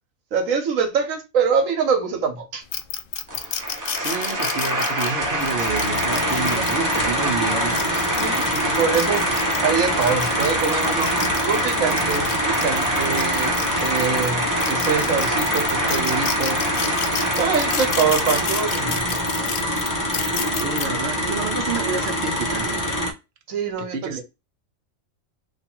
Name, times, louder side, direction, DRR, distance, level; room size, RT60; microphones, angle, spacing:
voice 1, 0.3-2.6 8.2-9.2 9.6-11.1 11.4-16.6 17.4-19.2 23.5-24.2, right 6 dB, 75° right, 1.2 m, -24 dB
bat sounds, 2.7-7.0 7.6-9.6 10.0-14.3 14.6-20.8, left 8 dB, 65° left, 0.5 m, -30 dB
sound 1, 3.3-19.3, right 1 dB, 20° right, 0.6 m, -26 dB
voice 2, 4.0-7.9 20.5-22.8 23.8-24.2, right 5 dB, 55° right, 0.9 m, -29 dB
sound 2, 5.2-23.1, equal, 15° left, 0.9 m, -26 dB
3.1 x 2.4 x 4.3 m
omnidirectional pair, 1.4 m